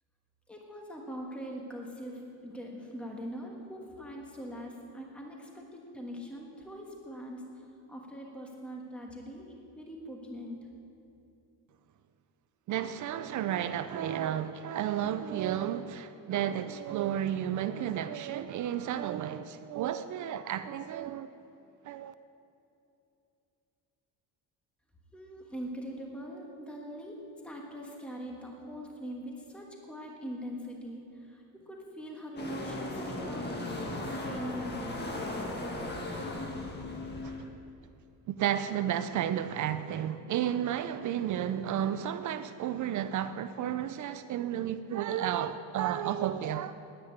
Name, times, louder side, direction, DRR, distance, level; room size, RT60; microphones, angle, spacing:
voice 1, 0.5-7.4 7.9-10.6 25.1-27.1 27.4-31.0 31.3-33.7 34.2-35.0, equal, 5° left, 1.4 m, -42 dB
voice 2, 12.7-21.3 21.8-22.1 37.2-37.4 38.3-46.9, right 10 dB, 45° right, 0.4 m, -32 dB
sound 1, 32.4-37.5, left 1 dB, 25° left, 1.6 m, -37 dB
10.0 x 10.0 x 9.5 m
cardioid pair, 160°, 43 cm